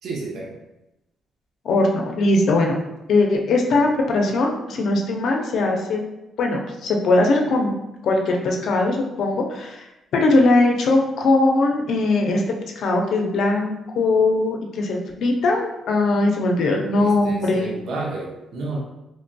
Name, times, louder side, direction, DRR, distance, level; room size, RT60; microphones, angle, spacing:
voice 1, 0.0-0.6 16.9-18.8, right 3 dB, 70° right, -3 dB, 0.6 m, -31 dB
voice 2, 1.6-2.7 3.1-6.0 6.4-7.7 8.0-9.9 10.1-12.4 12.8-17.8, left 2 dB, 70° left, 1 dB, 0.5 m, -20 dB
3.1 x 2.5 x 2.2 m, 0.93 s
cardioid pair, 90°, 0 cm